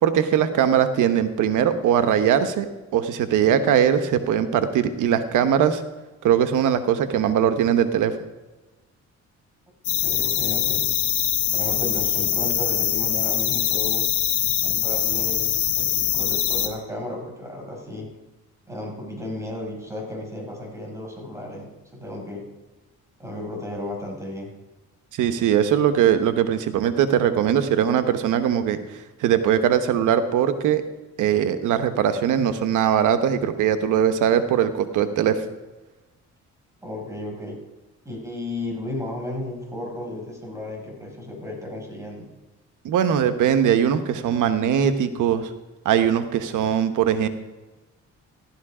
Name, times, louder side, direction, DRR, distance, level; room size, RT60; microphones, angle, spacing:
voice 1, 0.0-2.7 2.9-5.8 6.2-8.2 25.2-28.8 29.2-30.8 31.2-35.4 42.8-45.5 45.8-47.3, right 9 dB, 85° right, 10 dB, 1.2 m, -20 dB
sound 1, 9.8-16.7, left 11 dB, 80° left, 1.8 m, -23 dB
voice 2, 10.0-10.9 11.5-14.0 14.6-18.1 18.7-22.5 23.2-24.5 36.8-37.6 38.0-42.3, left 1 dB, 10° right, 0 dB, 5.9 m, -34 dB
15.0 x 12.5 x 5.0 m, 1.1 s
cardioid pair, 90°, 30 cm